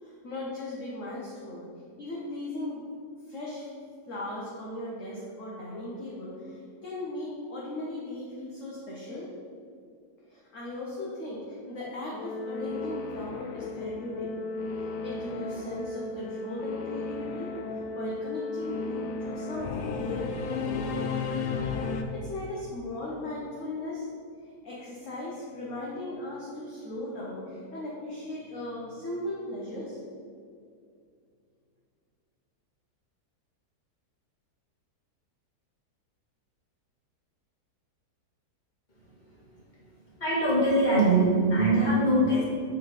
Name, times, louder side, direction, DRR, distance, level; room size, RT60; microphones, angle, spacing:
voice 1, 0.0-1.6 2.0-2.8 3.3-3.7 4.1-9.3 10.3-14.3 14.7-21.2 22.1-24.1 24.6-30.0, left 1 dB, 55° left, -5 dB, 1.3 m, -37 dB
Singing / Musical instrument, 12.1-22.0, left 4 dB, 80° left, 1.2 m, -34 dB
voice 2, 40.2-42.4, right 1 dB, 30° left, -7 dB, 2.1 m, -22 dB
7.0 x 4.6 x 4.9 m, 2.3 s
omnidirectional pair, 1.7 m